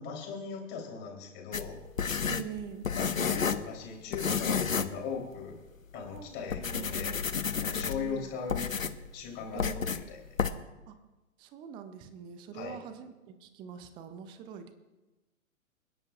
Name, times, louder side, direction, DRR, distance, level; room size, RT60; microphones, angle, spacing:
voice 1, 0.0-1.8 2.8-5.6 5.9-7.2 7.6-8.7 9.1-10.2 12.5-12.8, left 5 dB, 25° left, 0 dB, 3.5 m, -39 dB
sound 1, 1.5-3.7 4.1-5.0 5.3-5.4 6.0-6.2 6.5-8.1 8.5-9.1 9.6-10.0 10.4-10.5, left 6 dB, 75° left, 0.9 m, -31 dB
voice 2, 2.2-2.9 5.9-7.3 7.7-8.3 9.5-10.1 10.9-11.0 11.4-13.1 13.4-14.7, right 8 dB, 10° right, 9 dB, 0.6 m, -44 dB
29.0 x 11.0 x 2.5 m, 1.1 s
figure-of-eight pair, 115°, 40 cm